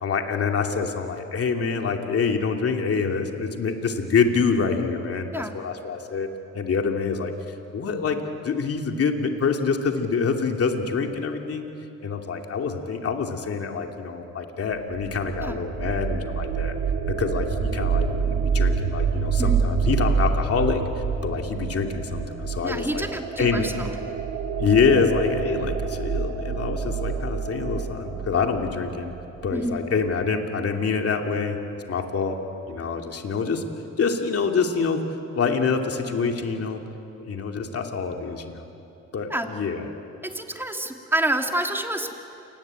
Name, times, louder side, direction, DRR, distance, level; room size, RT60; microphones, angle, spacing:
voice 1, 0.0-7.3 7.7-11.7 12.0-16.7 17.1-20.8 21.2-23.0 23.4-23.7 24.6-29.1 29.4-31.6 31.9-32.4 32.7-33.6 34.0-35.0 35.3-36.8 37.2-38.6 39.1-39.8, left 5 dB, 50° left, 3 dB, 2.7 m, -26 dB
sound 1, 14.7-29.5, right 6 dB, 85° right, 2.5 m, -27 dB
voice 2, 22.6-24.0 29.5-29.8 39.3-39.5 40.2-42.1, right 1 dB, 5° right, 3 dB, 2.7 m, -28 dB
28.5 x 19.5 x 9.0 m, 2.8 s
cardioid pair, 90°, 30 cm